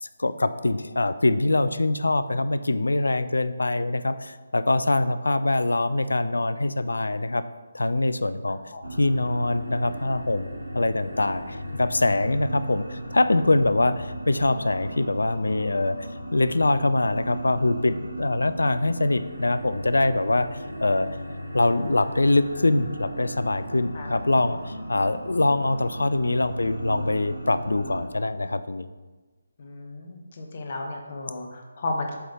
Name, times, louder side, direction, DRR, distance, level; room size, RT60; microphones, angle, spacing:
voice 1, 0.0-7.4 7.7-8.6 9.0-10.5 10.7-16.0 16.3-21.1 21.5-28.9, left 2 dB, 65° left, 13 dB, 0.3 m, -24 dB
sound 1, 8.8-28.0, right 1 dB, 80° right, 1.2 m, -36 dB
voice 2, 29.6-32.1, left 2 dB, 40° left, 2 dB, 0.9 m, -33 dB
7.7 x 3.3 x 3.8 m, 1.3 s
figure-of-eight pair, 150°, 0 cm